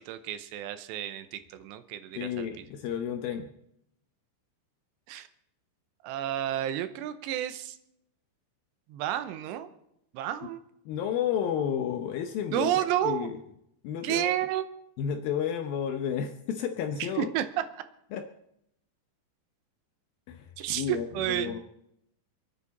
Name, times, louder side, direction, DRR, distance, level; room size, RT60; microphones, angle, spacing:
voice 1, 0.0-2.5 5.1-5.3 6.0-7.8 8.9-9.7 10.1-10.6 12.5-13.3 14.0-14.7 17.0-17.5 17.8-17.9 20.6-21.6, right 12 dB, 85° right, 11 dB, 3.0 m, -31 dB
voice 2, 2.2-3.5 10.9-13.4 13.8-14.3 15.0-17.3 18.1-18.2 20.3-21.6, left 8 dB, 75° left, 6 dB, 2.2 m, -32 dB
27.5 x 9.9 x 4.2 m, 0.78 s
omnidirectional pair, 5.0 m